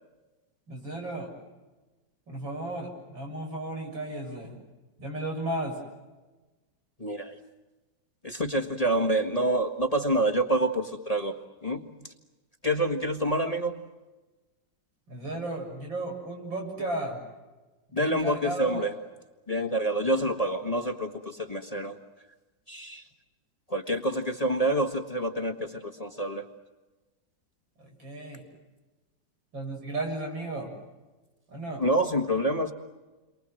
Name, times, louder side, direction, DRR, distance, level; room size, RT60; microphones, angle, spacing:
voice 1, 0.7-1.3 2.3-4.6 5.0-5.8 15.1-17.2 17.9-18.8 27.8-28.4 29.5-30.7 31.5-31.8, right 1 dB, 90° right, 1 dB, 7.9 m, -34 dB
voice 2, 7.0-7.4 8.2-12.1 12.6-13.8 17.9-18.9 19.5-22.0 22.7-23.1 23.7-26.5 31.8-32.7, right 1 dB, 20° left, 4 dB, 1.6 m, -27 dB
29.5 x 24.0 x 7.8 m, 1.2 s
omnidirectional pair, 2.0 m